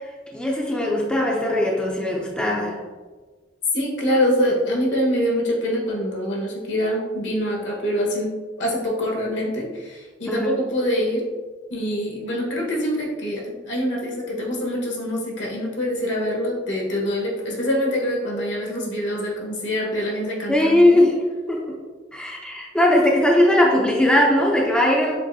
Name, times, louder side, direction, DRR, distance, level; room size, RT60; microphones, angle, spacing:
voice 1, 0.3-2.8 10.3-10.6 20.5-21.2 21.5-21.8 22.1-25.2, left 1 dB, 5° left, -2 dB, 0.5 m, -19 dB
voice 2, 3.7-11.3 11.7-21.0, equal, 75° left, -3 dB, 1.3 m, -25 dB
7.3 x 2.6 x 2.7 m, 1.4 s
head